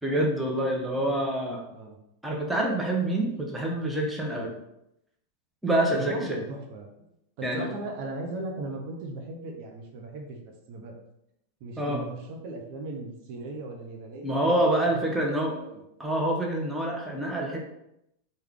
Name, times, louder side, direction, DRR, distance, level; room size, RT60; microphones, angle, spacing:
voice 1, 0.0-1.6 2.2-4.5 5.6-6.4 7.4-7.7 11.8-12.0 14.2-15.5 16.0-17.6, right 1 dB, 5° right, -1 dB, 0.7 m, -26 dB
voice 2, 5.9-6.9 7.4-10.4 10.7-10.9 11.6-15.8, right 2 dB, 45° right, 2 dB, 0.7 m, -38 dB
4.6 x 2.2 x 3.6 m, 0.82 s
figure-of-eight pair, 90°, 0 cm